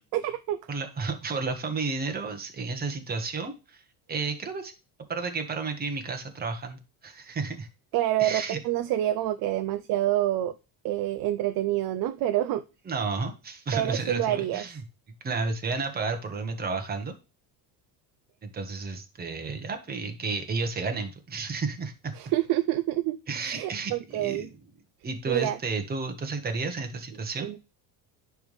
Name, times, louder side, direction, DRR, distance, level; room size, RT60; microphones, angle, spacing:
voice 1, 0.1-0.6 7.9-10.5 10.8-12.6 13.7-14.6 22.1-24.5 25.3-25.6 27.4-27.6, right 14 dB, 55° right, 10 dB, 0.5 m, -27 dB
voice 2, 0.7-3.8 4.1-4.7 5.1-7.7 8.2-8.6 12.9-14.8 15.2-17.1 18.4-22.1 23.3-24.5 25.0-27.5, right 4 dB, 20° right, 5 dB, 1.2 m, -32 dB
10.5 x 3.5 x 3.1 m, 0.30 s
cardioid pair, 140°, 44 cm